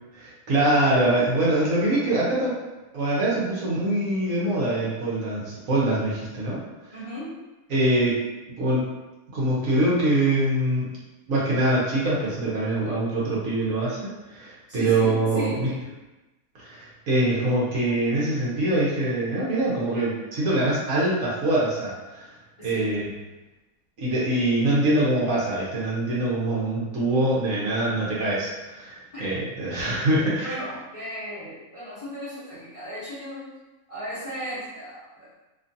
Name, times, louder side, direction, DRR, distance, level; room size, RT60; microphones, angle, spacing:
voice 1, 0.1-2.6 2.9-6.6 7.7-8.2 8.6-8.8 9.3-10.8 11.3-15.7 16.7-22.2 22.6-23.0 24.0-30.5, right 1 dB, 70° right, -7 dB, 1.3 m, -24 dB
voice 2, 6.9-7.4 14.7-15.7 22.6-22.9 29.1-29.2 30.1-33.5 33.9-35.3, equal, 30° left, -12 dB, 0.9 m, -36 dB
3.0 x 2.4 x 2.6 m, 1.1 s
omnidirectional pair, 1.5 m